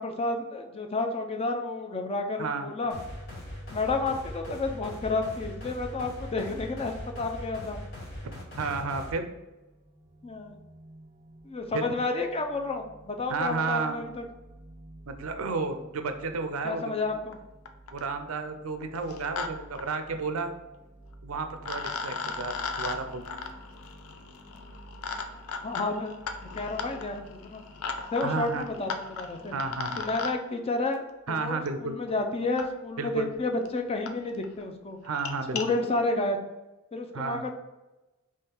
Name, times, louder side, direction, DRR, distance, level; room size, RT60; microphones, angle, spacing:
voice 1, 0.0-2.9 3.7-7.8 10.2-10.5 11.4-14.2 16.6-17.4 25.6-26.1 26.4-27.6 28.1-29.5 30.0-35.0 35.5-36.4 36.9-37.5, left 3 dB, 30° left, 4 dB, 0.5 m, -31 dB
voice 2, 2.4-2.7 8.6-9.3 11.7-11.9 13.3-14.0 15.0-17.0 17.9-20.5 21.2-23.2 28.2-28.6 29.5-30.0 31.3-32.0 33.0-33.3 35.0-35.8 37.1-37.4, right 4 dB, 80° right, 8 dB, 0.5 m, -32 dB
sound 1, 2.9-9.1, left 1 dB, 55° left, 1.5 m, -40 dB
sound 2, 8.9-28.0, right 1 dB, 15° right, 0.6 m, -52 dB
sound 3, 17.3-17.4 17.7-18.1 18.9-19.5 19.7-19.8 21.1-21.2 21.6-30.3 31.7-31.8 32.6-32.7 33.3-33.4 33.6-33.7 34.1-34.2 34.4-34.6 35.0-35.6, left 5 dB, 85° left, 0.5 m, -37 dB
3.6 x 3.1 x 4.4 m, 1.1 s
head